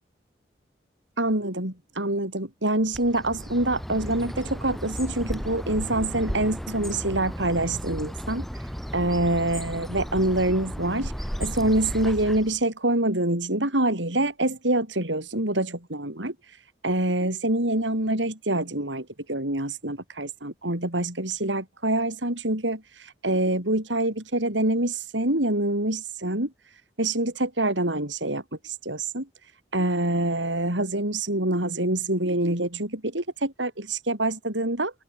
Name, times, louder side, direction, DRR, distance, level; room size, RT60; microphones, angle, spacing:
voice 1, 1.2-8.5 8.9-11.1 11.4-16.3 16.8-26.5 27.0-29.3 29.7-34.9, right 1 dB, 90° right, 6.6 m, -26 dB
Bird, 2.9-12.6, equal, ahead, 4.6 m, -34 dB
head